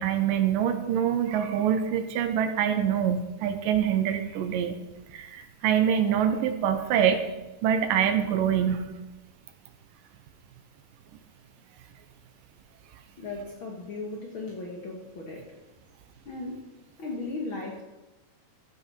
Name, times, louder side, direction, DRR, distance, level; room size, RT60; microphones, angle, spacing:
voice 1, 0.0-4.8 5.1-7.2 7.6-8.9, right 9 dB, 85° right, 8 dB, 2.5 m, -25 dB
voice 2, 13.2-15.6 16.2-16.7 17.0-17.8, left 3 dB, 55° left, 0 dB, 1.5 m, -36 dB
14.5 x 5.8 x 5.4 m, 1.1 s
omnidirectional pair, 3.9 m